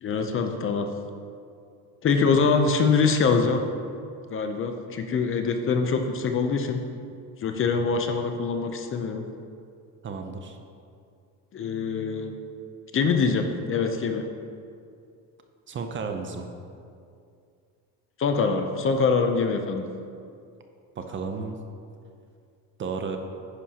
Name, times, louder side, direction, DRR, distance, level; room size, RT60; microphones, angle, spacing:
voice 1, 0.0-0.9 2.0-3.6 4.3-6.8 7.4-9.2 11.5-12.3 12.9-14.2 18.2-19.8, left 5 dB, 35° left, 5 dB, 0.6 m, -24 dB
voice 2, 10.0-10.6 15.7-16.5 21.0-21.6 22.8-23.2, right 5 dB, 30° right, 5 dB, 0.6 m, -33 dB
11.0 x 9.5 x 2.9 m, 2.4 s
cardioid pair, 150°, 39 cm